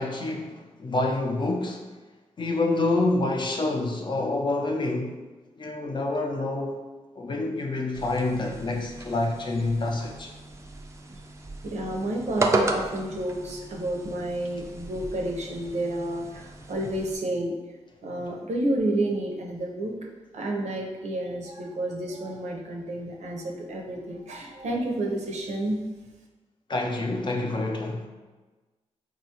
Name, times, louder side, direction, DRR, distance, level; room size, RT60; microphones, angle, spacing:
voice 1, 0.0-1.8 2.4-5.2 5.6-6.8 7.2-10.3 26.7-28.1, left 2 dB, 40° left, 1 dB, 0.5 m, -27 dB
sound 1, 7.9-17.1, right 2 dB, 25° right, 0.4 m, -34 dB
voice 2, 11.6-17.5 18.0-19.9 20.3-25.8, right 1 dB, 70° right, 0 dB, 0.6 m, -30 dB
3.7 x 2.3 x 2.8 m, 1.2 s
cardioid pair, 80°, 12 cm